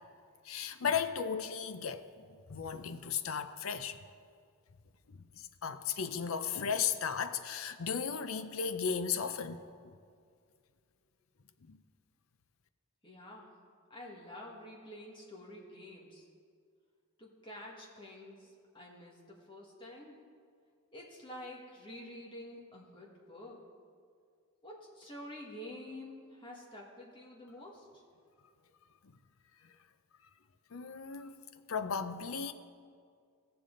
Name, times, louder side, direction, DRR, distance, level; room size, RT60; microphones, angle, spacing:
voice 1, 0.4-4.0 5.1-9.9 11.6-11.8 29.6-29.7 30.7-31.4 31.7-32.5, left 6 dB, 70° left, 0.6 m, -36 dB
voice 2, 13.0-13.5 13.9-16.3 17.2-20.2 20.9-23.6 24.6-27.9, left 1 dB, 20° left, 1.5 m, -49 dB
17.0 x 6.9 x 3.8 m
head